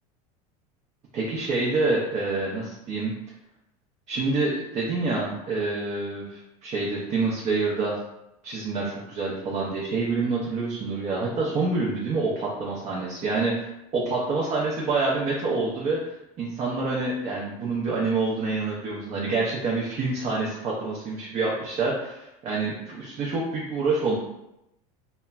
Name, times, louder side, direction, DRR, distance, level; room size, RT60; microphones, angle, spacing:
voice 1, 1.1-3.1 4.1-8.0 8.4-24.2, right 3 dB, 40° right, -4 dB, 0.5 m, -27 dB
3.1 x 2.0 x 2.3 m, 0.87 s
supercardioid pair, 115°, 18 cm